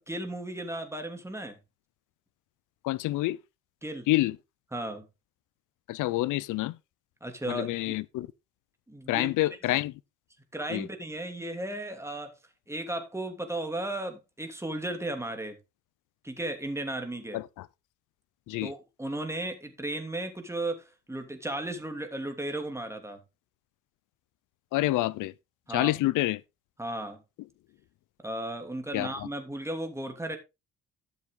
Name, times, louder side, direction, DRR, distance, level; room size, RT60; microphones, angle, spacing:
voice 1, 0.0-1.6 3.8-4.1 4.7-5.1 7.2-7.9 8.9-9.3 10.5-12.3 12.7-15.6 16.2-17.4 18.6-23.2 25.7-25.9 26.8-27.2 28.2-30.4, right 1 dB, 10° right, 2.9 m, -35 dB
voice 2, 2.8-3.4 4.1-4.4 5.9-6.8 7.5-8.3 9.1-9.9 10.7-10.9 17.3-17.7 18.5-18.7 24.7-25.3 25.7-26.4 28.9-29.3, left 17 dB, 90° left, 0.7 m, -27 dB
12.0 x 7.2 x 3.9 m
cardioid pair, 90°, 30 cm